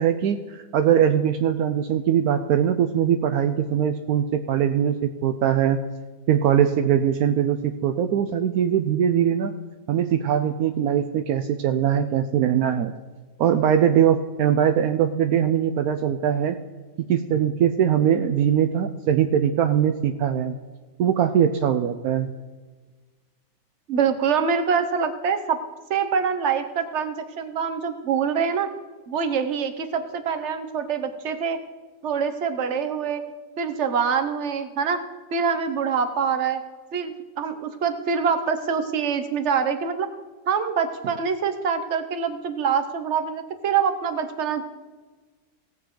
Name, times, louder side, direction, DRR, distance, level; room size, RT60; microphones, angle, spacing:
voice 1, 0.0-5.8 6.3-9.5 9.9-12.9 13.4-16.6 17.1-20.5 21.0-22.3, right 9 dB, 75° right, 7 dB, 1.1 m, -21 dB
voice 2, 23.9-25.6 25.9-28.7 29.1-31.6 32.0-33.2 33.6-35.0 35.3-36.6 36.9-40.1 40.5-44.6, right 6 dB, 50° right, 8 dB, 1.2 m, -25 dB
18.0 x 7.7 x 3.8 m, 1.3 s
omnidirectional pair, 1.7 m